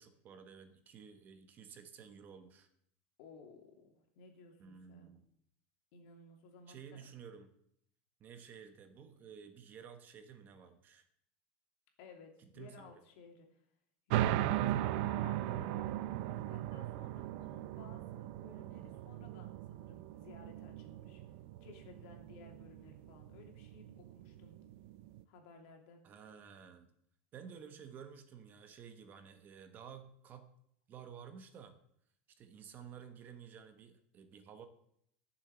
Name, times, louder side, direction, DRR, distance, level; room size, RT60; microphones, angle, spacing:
voice 1, 0.0-2.7 4.6-5.3 6.7-7.5 8.2-11.1 12.5-12.9 26.0-26.9 27.3-30.5 30.9-31.7 32.4-34.7, right 7 dB, 30° right, 8 dB, 1.1 m, -53 dB
voice 2, 3.2-5.1 5.9-7.0 12.0-13.6 14.1-24.6 25.3-26.0, left 4 dB, 60° left, 2 dB, 3.1 m, -57 dB
sound 1, 14.1-25.2, right 13 dB, 60° right, 0.6 m, -38 dB
13.5 x 7.1 x 7.1 m, 0.71 s
supercardioid pair, 160°, 7 cm